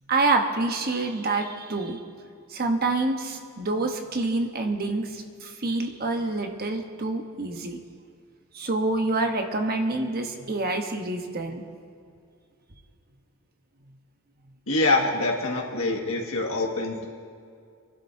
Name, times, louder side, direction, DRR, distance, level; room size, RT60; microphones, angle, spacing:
voice 1, 0.1-2.0 2.5-7.8 8.5-11.6, right 2 dB, 45° right, 4 dB, 1.1 m, -27 dB
voice 2, 14.7-17.1, left 2 dB, 70° left, -1 dB, 1.9 m, -25 dB
26.0 x 11.5 x 2.8 m, 2.3 s
head